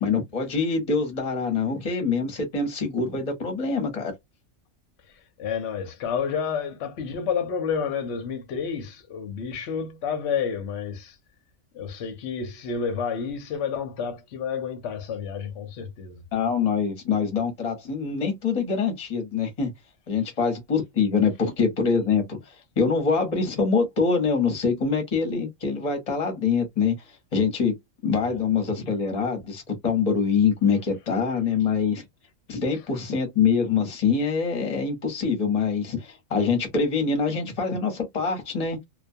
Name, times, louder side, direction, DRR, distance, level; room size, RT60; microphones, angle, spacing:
voice 1, 0.0-4.1 16.3-19.7 20.1-22.4 22.8-26.9 27.3-27.7 28.0-32.0 32.5-38.8, left 5 dB, 30° left, 0.9 m, -24 dB
voice 2, 5.4-11.2 11.7-16.2 28.2-28.4, left 6 dB, 60° left, 0.9 m, -30 dB
2.3 x 2.3 x 2.6 m
omnidirectional pair, 1.4 m